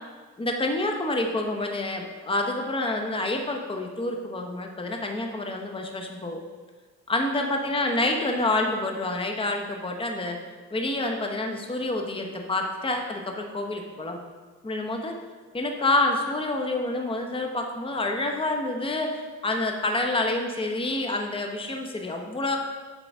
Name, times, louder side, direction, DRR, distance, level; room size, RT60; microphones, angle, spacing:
voice 1, 0.4-6.4 7.1-10.4 10.7-14.2 14.6-15.1 15.5-22.6, left 2 dB, 15° left, 2 dB, 1.0 m, -28 dB
8.0 x 3.8 x 6.0 m, 1.4 s
cardioid pair, 90°, 30 cm